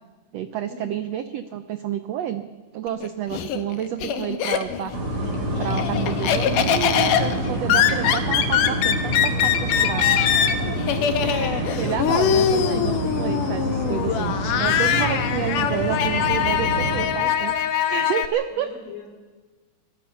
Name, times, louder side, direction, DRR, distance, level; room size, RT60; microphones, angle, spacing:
voice 1, 0.3-2.4 2.7-5.3 5.6-10.2 11.2-18.7, right 10 dB, 80° right, 10 dB, 1.4 m, -30 dB
Laughter, 2.9-5.0 5.4-18.3, left 9 dB, 75° left, 2.6 m, -23 dB
sound 1, 4.9-17.0, equal, 45° right, 5.6 m, -27 dB
voice 2, 10.6-11.1 11.5-12.4 15.1-15.3 18.5-19.1, left 2 dB, 50° left, 1 dB, 5.2 m, -39 dB
24.5 x 21.0 x 5.8 m, 1.3 s
omnidirectional pair, 3.9 m